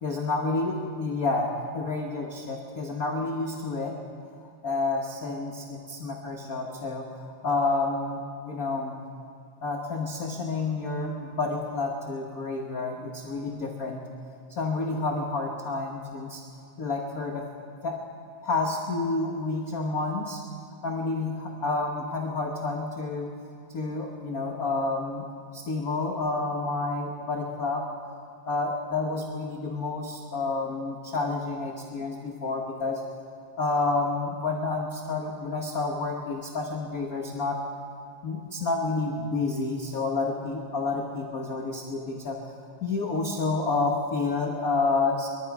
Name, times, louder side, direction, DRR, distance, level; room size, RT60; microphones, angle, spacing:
voice 1, 0.0-4.0 4.6-8.2 8.4-9.0 9.6-14.0 14.5-16.4 16.8-17.5 17.8-18.0 18.4-20.4 20.8-23.3 23.7-25.3 25.5-27.9 28.5-33.0 33.6-37.7 38.2-42.6 42.8-45.3, left 3 dB, 70° left, 1 dB, 0.8 m, -29 dB
23.0 x 13.0 x 4.7 m, 2.3 s
omnidirectional pair, 3.4 m